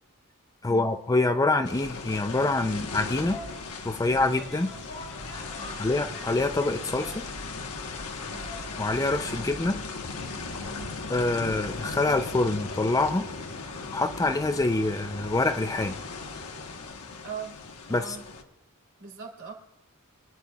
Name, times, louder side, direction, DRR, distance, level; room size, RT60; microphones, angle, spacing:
voice 1, 0.6-3.4 3.8-4.7 5.8-7.2 8.8-9.8 11.1-13.3 13.9-16.0 17.9-18.2, left 2 dB, 15° left, 8 dB, 0.4 m, -25 dB
sound 1, 1.6-18.4, left 4 dB, 85° left, 1.2 m, -38 dB
sound 2, 3.1-16.9, left 1 dB, 60° left, 4.5 m, -46 dB
voice 2, 5.6-6.0 8.3-8.5 10.7-10.9 17.2-17.6 18.0-18.2 19.0-19.5, right 5 dB, 60° right, 0 dB, 3.0 m, -41 dB
26.5 x 10.0 x 2.4 m, 0.91 s
head